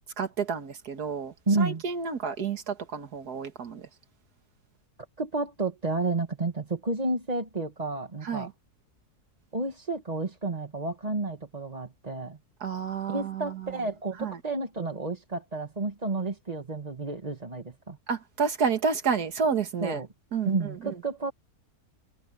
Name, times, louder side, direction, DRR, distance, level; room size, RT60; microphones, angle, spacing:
voice 1, 0.2-3.8 8.3-8.5 12.6-13.5 14.2-14.4 18.1-20.0 20.3-20.5, right 6 dB, 80° right, 2.2 m, -30 dB
voice 2, 1.5-1.8 5.2-8.5 9.5-12.4 13.1-18.0 19.8-20.1 20.4-21.3, right 3 dB, 25° right, 1.6 m, -31 dB
omnidirectional pair, 1.7 m